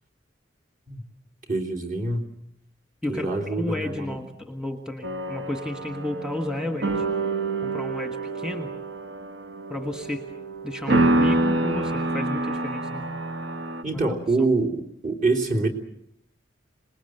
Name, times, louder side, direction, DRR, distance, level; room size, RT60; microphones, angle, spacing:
voice 1, 1.5-2.3 3.1-4.2 13.8-15.7, right 3 dB, 45° right, 2 dB, 3.4 m, -25 dB
voice 2, 3.0-7.0 7.6-8.7 9.7-10.2 10.6-13.1 13.9-14.2, left 1 dB, 5° right, 5 dB, 1.5 m, -32 dB
sound 1, 5.0-13.8, right 2 dB, 65° right, 1.3 m, -27 dB
26.5 x 20.0 x 7.9 m, 0.74 s
head